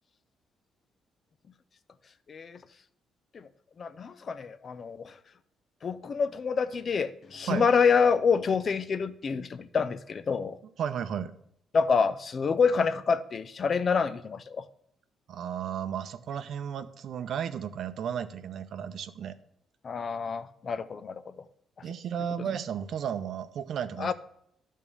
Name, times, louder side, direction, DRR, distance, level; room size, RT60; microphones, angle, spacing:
voice 1, 2.3-2.6 3.3-3.5 3.8-5.1 5.8-10.6 11.7-14.6 19.8-21.2 24.0-24.1, left 5 dB, 45° left, 13 dB, 0.5 m, -27 dB
voice 2, 10.8-11.3 15.3-19.3 21.8-24.1, right 8 dB, 65° right, 11 dB, 0.6 m, -34 dB
10.5 x 3.7 x 6.9 m, 0.71 s
cardioid pair, 90°, 0 cm